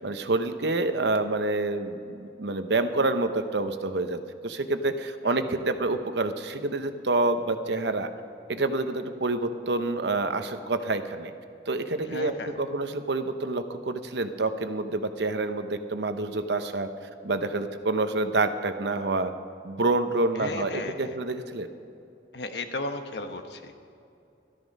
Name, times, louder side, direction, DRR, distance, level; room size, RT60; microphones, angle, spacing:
voice 1, 0.0-8.1 8.5-11.3 11.7-16.9 17.2-19.3 19.6-21.7, right 2 dB, 70° right, 9 dB, 0.9 m, -27 dB
voice 2, 12.0-12.5 20.4-21.2 22.3-23.7, left 2 dB, 65° left, 7 dB, 1.0 m, -35 dB
13.5 x 13.0 x 5.3 m, 2.7 s
head